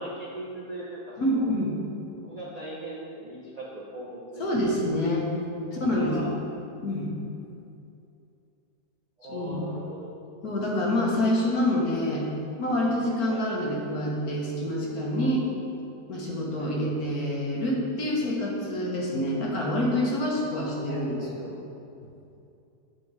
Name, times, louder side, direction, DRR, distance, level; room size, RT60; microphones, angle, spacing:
voice 1, 0.0-1.5 2.2-4.5 5.6-6.3 9.2-10.1 13.3-13.5 16.6-16.8 20.5-21.4, right 1 dB, 75° right, -6 dB, 0.3 m, -40 dB
voice 2, 1.2-1.7 4.4-5.3 5.7-6.4 6.8-7.1 9.3-9.6 10.4-12.3 12.6-15.5 16.1-21.5, left 1 dB, 65° left, -3 dB, 1.5 m, -27 dB
7.3 x 4.5 x 4.6 m, 2.6 s
omnidirectional pair, 1.8 m